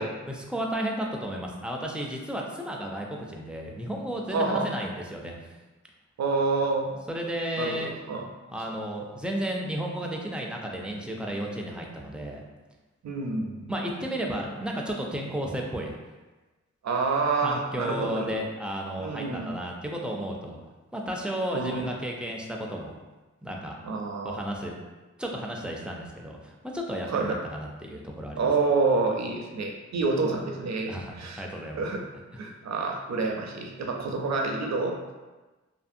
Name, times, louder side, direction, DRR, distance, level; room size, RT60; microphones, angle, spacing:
voice 1, 0.0-5.3 7.1-7.9 8.5-12.4 13.7-16.0 17.4-20.6 20.9-22.9 23.4-23.8 24.2-24.7 25.2-28.5 30.9-31.8, equal, 5° right, -1 dB, 0.4 m, -33 dB
voice 2, 4.3-4.7 6.2-6.9 7.6-8.3 13.0-13.7 16.8-18.4 19.0-19.6 21.5-21.9 23.8-24.4 27.1-27.4 28.4-31.5 31.8-32.0 32.4-35.0, right 3 dB, 65° right, 1 dB, 0.5 m, -28 dB
2.7 x 2.6 x 2.5 m, 1.2 s
wide cardioid pair, 90°, 30 cm